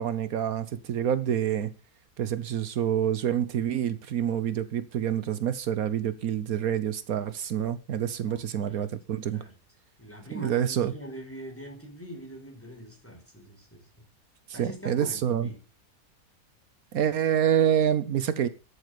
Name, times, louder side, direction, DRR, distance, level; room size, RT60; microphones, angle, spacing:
voice 1, 0.0-1.7 2.2-9.4 10.3-10.9 14.5-15.5 16.9-18.5, right 9 dB, 80° right, 1.4 m, -27 dB
voice 2, 8.2-8.9 9.3-9.5 10.0-14.1 14.5-15.6, equal, 10° left, 5.1 m, -43 dB
13.5 x 8.5 x 6.8 m
omnidirectional pair, 1.5 m